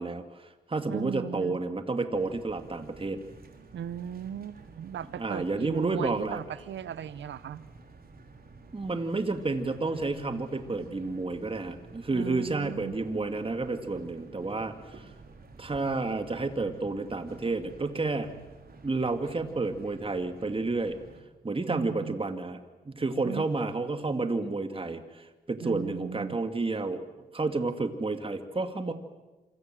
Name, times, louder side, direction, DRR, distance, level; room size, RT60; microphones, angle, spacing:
voice 1, 0.0-3.2 5.2-6.4 8.7-15.1 15.6-18.3 18.8-21.0 21.4-22.6 22.8-27.0 27.3-28.9, right 3 dB, 30° right, 7 dB, 2.4 m, -30 dB
voice 2, 0.9-1.6 3.7-7.6 12.1-13.0 21.7-22.2 23.2-23.5 25.6-26.4, right 9 dB, 70° right, 16 dB, 1.2 m, -37 dB
sound 1, 2.1-21.2, right 3 dB, 50° right, 4.4 m, -51 dB
27.0 x 23.0 x 7.8 m, 1.2 s
supercardioid pair, 55°, 19 cm